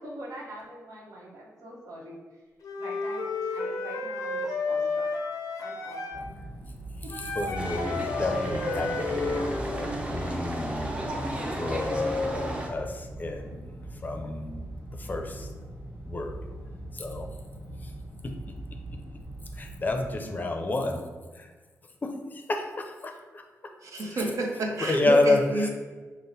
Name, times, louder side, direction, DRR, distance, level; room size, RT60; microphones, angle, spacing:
voice 1, 0.0-2.4 2.8-5.3 5.6-6.5 7.0-7.1 11.0-11.3 12.0-12.3, right 1 dB, 80° right, -3 dB, 1.1 m, -44 dB
Wind instrument woodwind instrument, 2.6-6.3 7.1-9.7, left 3 dB, 85° left, 0.6 m, -32 dB
sound 1, 6.1-20.1, right 1 dB, 50° right, 1.3 m, -41 dB
voice 2, 7.4-13.7 14.0-14.7 15.0-15.5 16.1-16.4 16.9-17.3 19.6-21.0 21.4-21.5 22.0-23.4 24.8-25.7, left 2 dB, 30° left, 4 dB, 0.5 m, -29 dB
sound 2, 7.6-12.7, right 1 dB, 20° right, 0.6 m, -34 dB
voice 3, 23.8-25.7, right 2 dB, 65° right, 1 dB, 0.7 m, -29 dB
5.4 x 2.1 x 4.0 m, 1.4 s
wide cardioid pair, 130°, 6 cm